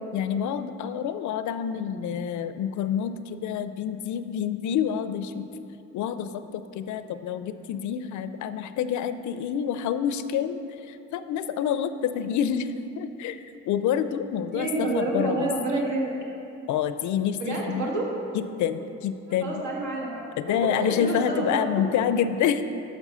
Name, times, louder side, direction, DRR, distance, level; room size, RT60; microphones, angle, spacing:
voice 1, 0.1-5.5 5.9-10.6 10.9-15.5 16.7-17.9 18.3-19.6 20.4-22.6, left 8 dB, 75° left, 11 dB, 0.5 m, -28 dB
voice 2, 14.5-16.1 17.4-18.1 19.4-20.2 20.5-21.6, right 2 dB, 70° right, -2 dB, 1.7 m, -28 dB
6.5 x 6.1 x 5.5 m, 2.8 s
cardioid pair, 90°, 30 cm